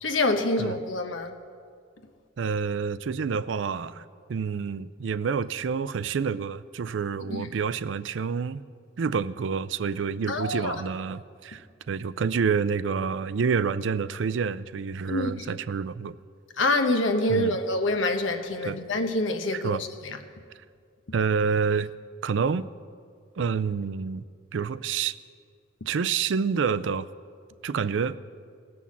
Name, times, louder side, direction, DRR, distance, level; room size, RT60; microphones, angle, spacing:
voice 1, 0.0-1.3 7.3-7.5 10.3-10.8 15.1-15.3 16.6-19.9, left 2 dB, 85° left, 1.0 m, -26 dB
voice 2, 2.4-8.6 9.0-16.2 17.3-17.6 18.6-18.8 19.5-19.9 21.1-21.9 22.2-22.7 23.4-24.2 24.5-25.2 25.9-27.1 27.6-28.2, right 6 dB, 75° right, 0.4 m, -28 dB
18.5 x 6.2 x 7.3 m
head